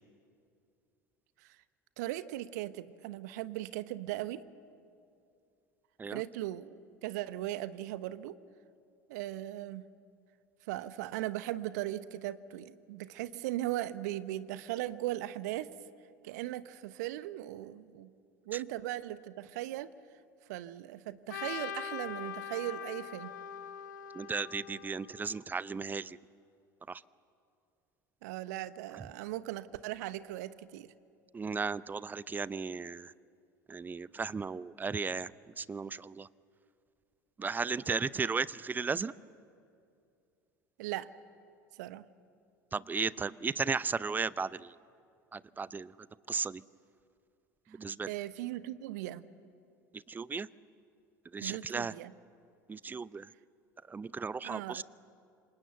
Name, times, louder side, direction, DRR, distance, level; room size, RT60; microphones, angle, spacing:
voice 1, 2.0-4.4 6.1-8.4 9.1-9.9 10.7-15.7 16.2-18.1 18.5-19.9 20.5-23.3 28.2-30.9 40.8-41.1 41.8-42.0 47.7-47.8 48.1-49.2 51.4-52.1 54.4-54.8, right 15 dB, 65° right, 15 dB, 1.0 m, -38 dB
Trumpet, 21.3-25.5, left 8 dB, 70° left, 1.0 m, -42 dB
voice 2, 24.1-26.2 26.9-27.0 31.3-33.1 33.7-35.3 35.6-36.3 37.4-39.1 42.7-44.7 45.3-45.9 46.3-46.6 47.8-48.1 50.1-50.5 51.3-51.9 52.7-53.3 53.9-54.8, right 5 dB, 20° right, 20 dB, 0.6 m, -35 dB
28.0 x 26.0 x 8.0 m, 2.5 s
figure-of-eight pair, 70°, 10 cm